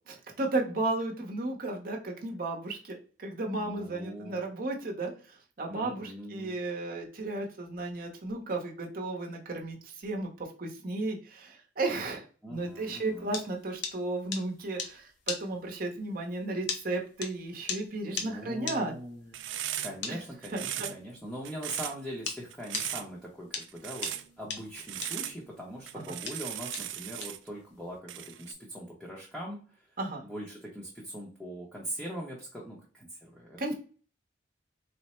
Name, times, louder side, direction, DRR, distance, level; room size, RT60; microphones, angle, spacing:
voice 1, 0.4-12.2 12.5-18.9 20.1-20.2 20.5-20.9 25.9-26.2 30.0-30.2 33.6-33.7, right 2 dB, 50° right, 1 dB, 0.8 m, -34 dB
voice 2, 3.5-4.4 5.7-6.6 12.4-13.4 18.1-19.4 19.8-24.1 24.4-29.9 30.2-33.6, equal, ahead, -4 dB, 0.7 m, -41 dB
sound 1, 12.7-22.4 22.7-28.0, left 5 dB, 70° left, 0.7 m, -38 dB
sound 2, 19.3-20.1 20.4-21.1 21.4-22.0 22.5-23.1 23.6-24.3 24.8-25.4 25.9-27.5 28.1-28.5, right 12 dB, 75° right, 0.3 m, -38 dB
3.2 x 2.0 x 4.1 m, 0.39 s
head